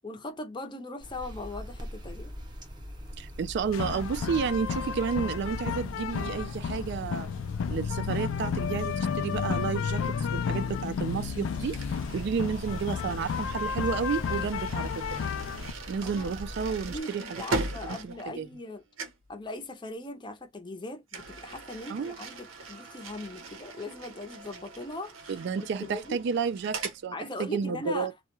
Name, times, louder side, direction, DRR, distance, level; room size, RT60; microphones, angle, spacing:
voice 1, 0.0-2.3 12.2-12.4 16.0-16.3 16.9-18.8 19.3-25.3 25.6-26.2 27.1-28.1, left 2 dB, 25° left, 0.5 m, -40 dB
sound 1, 1.0-17.0, equal, 25° right, 0.7 m, -42 dB
voice 2, 3.2-7.3 7.7-15.2 15.9-17.2 17.5-18.5 21.9-22.2 25.3-27.1 27.4-28.1, right 6 dB, 60° right, 0.3 m, -31 dB
sound 2, 3.7-15.7, left 6 dB, 80° left, 0.3 m, -32 dB
sound 3, 11.7-18.7 19.0-19.3 21.1-27.0, right 3 dB, 85° right, 0.7 m, -40 dB
2.3 x 2.1 x 2.9 m
head